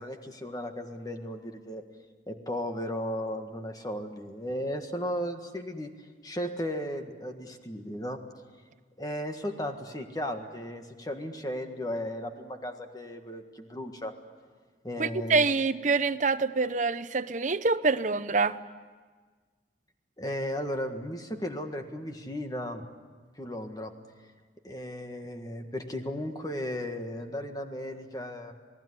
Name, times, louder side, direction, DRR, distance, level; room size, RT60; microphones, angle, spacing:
voice 1, 0.0-1.8 2.3-5.9 6.2-8.2 9.0-14.1 14.8-15.5 20.2-22.9 23.4-23.9 24.6-28.5, equal, 20° left, 1.7 m, -35 dB
voice 2, 15.0-18.6, right 4 dB, 45° right, 0.8 m, -26 dB
28.5 x 18.5 x 9.8 m
head